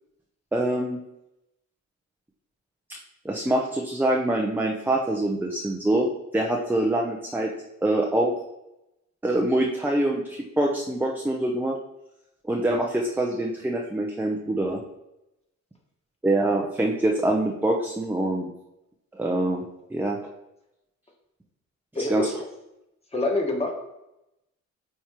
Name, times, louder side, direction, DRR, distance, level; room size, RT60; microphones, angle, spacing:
voice 1, 0.5-1.0 2.9-3.0 3.2-6.1 6.3-7.5 7.8-8.3 9.2-11.8 12.5-14.8 16.2-18.5 19.1-19.6 19.9-20.2 22.1-22.3, right 1 dB, 5° right, 0 dB, 0.6 m, -24 dB
voice 2, 21.9-22.3 23.1-23.7, left 2 dB, 20° left, 0 dB, 1.5 m, -26 dB
8.9 x 3.5 x 3.0 m, 0.89 s
cardioid pair, 90°, 30 cm